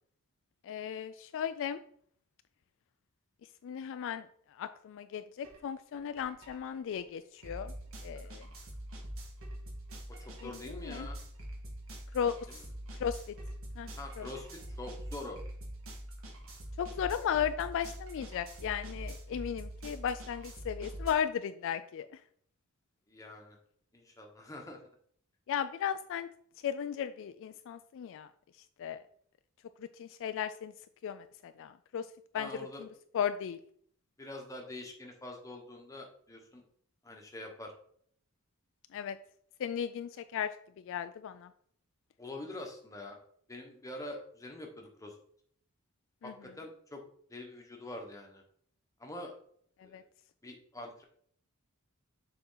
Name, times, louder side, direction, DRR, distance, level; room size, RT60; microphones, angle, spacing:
voice 1, 0.6-1.8 3.6-7.7 8.0-8.5 10.4-11.1 12.1-12.6 12.9-13.4 13.8-13.9 14.2-14.3 16.8-22.2 25.5-26.3 26.6-28.3 28.8-29.0 29.8-30.7 31.0-32.9 33.1-33.6 38.9-39.2 39.6-40.5 40.8-41.5 46.2-46.3 49.8-50.0, left 8 dB, 60° left, 11 dB, 0.3 m, -36 dB
sound 1, 5.4-5.6 5.9-21.1, right 1 dB, 65° right, 1.6 m, -44 dB
voice 2, 10.2-11.2 12.5-12.6 14.0-15.4 23.1-23.6 23.9-24.8 32.3-32.8 34.2-36.6 37.0-37.7 42.2-43.1 43.5-45.1 46.2-47.0 47.3-48.4 49.0-49.4 49.8-50.0 50.4-51.0, left 1 dB, 15° left, 1 dB, 1.1 m, -45 dB
6.7 x 4.3 x 3.9 m, 0.62 s
head